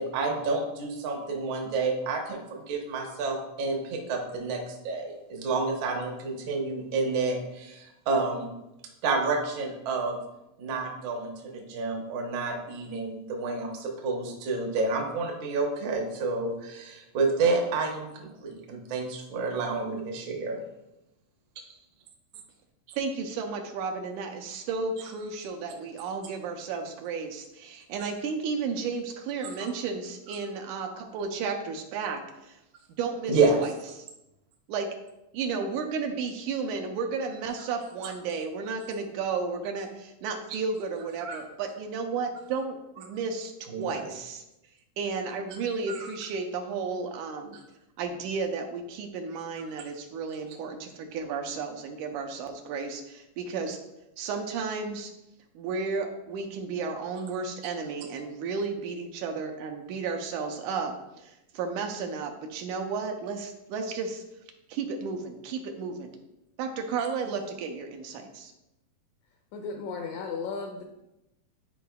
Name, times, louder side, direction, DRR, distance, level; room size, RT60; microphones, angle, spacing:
voice 1, 0.0-8.5 9.0-10.2 10.6-20.6 33.3-33.6 41.2-41.4 43.7-43.9 45.9-46.1, right 3 dB, 65° right, 1 dB, 1.2 m, -29 dB
voice 2, 22.9-32.6 33.0-33.7 34.0-34.1 34.7-34.9 35.3-44.4 45.0-47.6 48.0-53.8 54.2-55.1 55.6-60.9 61.2-64.2 64.7-66.2 66.6-68.5, right 5 dB, 80° right, 4 dB, 2.0 m, -33 dB
voice 3, 69.5-70.8, left 5 dB, 80° left, 3 dB, 1.7 m, -35 dB
10.0 x 4.7 x 2.3 m, 0.92 s
omnidirectional pair, 3.6 m